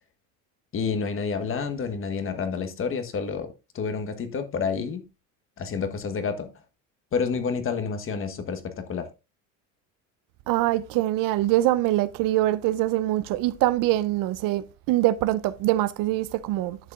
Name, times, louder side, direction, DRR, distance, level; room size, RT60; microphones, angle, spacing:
voice 1, 0.7-3.5 3.7-5.0 5.6-6.5 7.1-9.1, left 5 dB, 35° left, 1.3 m, -29 dB
voice 2, 10.5-16.8, right 15 dB, 60° right, 0.6 m, -24 dB
11.0 x 6.6 x 2.5 m
supercardioid pair, 115°, 38 cm